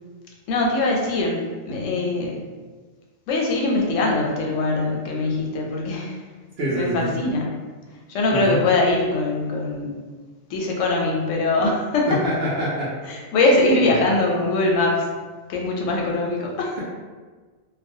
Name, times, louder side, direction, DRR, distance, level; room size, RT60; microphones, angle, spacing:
voice 1, 0.5-2.4 3.3-6.1 6.7-7.5 8.1-9.9 10.5-12.2 13.1-15.1 15.5-16.7, left 2 dB, 90° left, -1 dB, 0.9 m, -22 dB
voice 2, 6.6-7.1 8.3-8.6 12.1-12.9 13.8-13.9, equal, 65° right, -6 dB, 0.8 m, -25 dB
2.3 x 2.1 x 2.6 m, 1.4 s
omnidirectional pair, 1.2 m